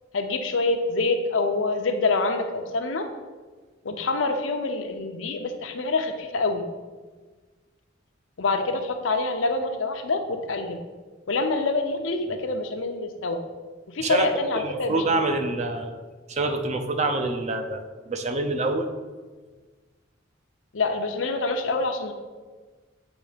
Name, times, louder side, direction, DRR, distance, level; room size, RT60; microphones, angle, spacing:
voice 1, 0.1-3.1 3.8-6.7 8.4-10.8 11.3-13.4 13.9-15.0 20.7-22.1, left 3 dB, 80° left, 6 dB, 0.7 m, -26 dB
voice 2, 14.5-16.0 16.3-17.8 18.1-18.9, right 2 dB, 35° right, 5 dB, 0.6 m, -26 dB
8.0 x 3.2 x 5.0 m, 1.4 s
head